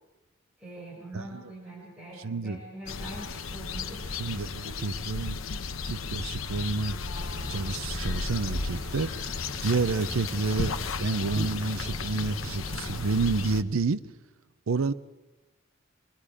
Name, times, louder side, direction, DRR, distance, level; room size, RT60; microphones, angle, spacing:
voice 1, 0.6-4.1 4.6-4.9, right 1 dB, 5° right, -6 dB, 6.1 m, -43 dB
voice 2, 2.2-2.6 4.2-5.4 5.7-7.0 7.5-9.3 9.6-14.0 14.7-14.9, right 4 dB, 75° right, 15 dB, 0.6 m, -29 dB
sound 1, 2.9-13.6, left 4 dB, 75° left, 0.9 m, -34 dB
sound 2, 7.2-13.2, right 1 dB, 20° right, 1.1 m, -42 dB
24.5 x 21.5 x 4.9 m, 1.1 s
head